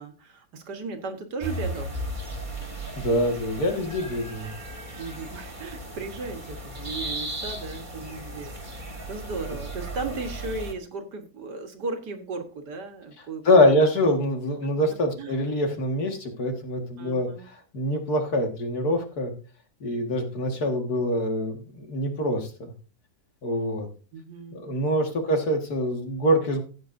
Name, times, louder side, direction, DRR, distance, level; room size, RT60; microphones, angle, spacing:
voice 1, 0.0-2.0 5.0-13.9 15.2-15.4 17.0-17.5 24.1-24.7, right 3 dB, 75° right, 6 dB, 2.0 m, -36 dB
sound 1, 1.4-10.7, right 1 dB, 30° right, 2.0 m, -36 dB
voice 2, 3.0-4.5 13.4-19.3 19.8-22.7 23.4-23.9 24.5-26.6, left 1 dB, 60° left, 3 dB, 2.4 m, -24 dB
14.5 x 8.6 x 2.6 m, 0.36 s
omnidirectional pair, 1.8 m